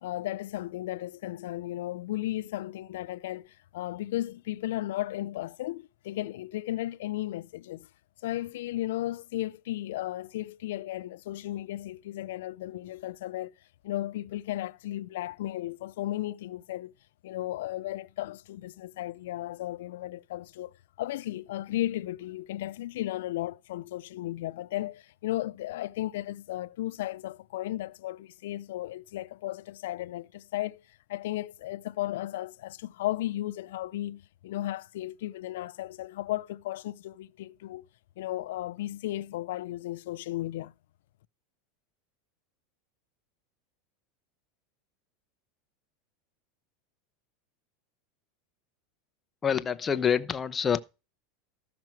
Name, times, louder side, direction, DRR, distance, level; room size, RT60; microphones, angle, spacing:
voice 1, 0.0-7.9 8.2-13.5 13.8-16.9 17.2-30.8 31.1-37.9 38.2-40.7, left 15 dB, 80° left, 0.4 m, -35 dB
voice 2, 49.4-50.8, left 7 dB, 20° left, 0.7 m, -26 dB
13.5 x 6.0 x 4.5 m
supercardioid pair, 140°, 0 cm